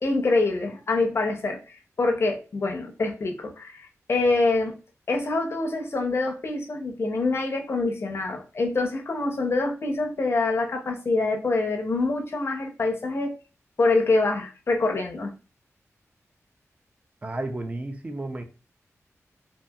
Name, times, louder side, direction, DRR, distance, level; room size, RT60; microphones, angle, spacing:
voice 1, 0.0-4.8 5.1-13.3 13.8-15.3, left 3 dB, 50° left, 0.6 m, -25 dB
voice 2, 17.2-18.4, right 2 dB, 25° right, 0.4 m, -32 dB
2.7 x 2.6 x 2.3 m
wide cardioid pair, 125°, 5 cm